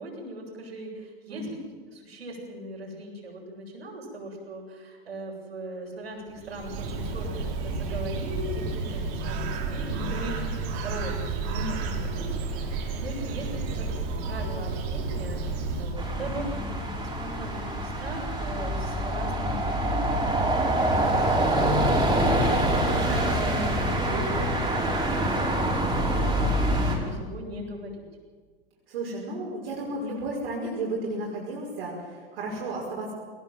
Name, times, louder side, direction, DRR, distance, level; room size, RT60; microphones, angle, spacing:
voice 1, 0.0-1.5 1.9-13.9 14.2-25.8 26.1-28.0, right 1 dB, 90° right, -2 dB, 7.5 m, -39 dB
Bird, 6.3-16.3, right 3 dB, 55° right, 4.4 m, -31 dB
voice 2, 11.5-12.1 25.9-26.3 28.9-33.1, right 2 dB, 70° right, -4 dB, 5.7 m, -34 dB
sound 1, 16.0-27.0, right 1 dB, 15° right, 5.6 m, -25 dB
21.5 x 18.5 x 7.8 m, 1.5 s
hypercardioid pair, 100°, 30 cm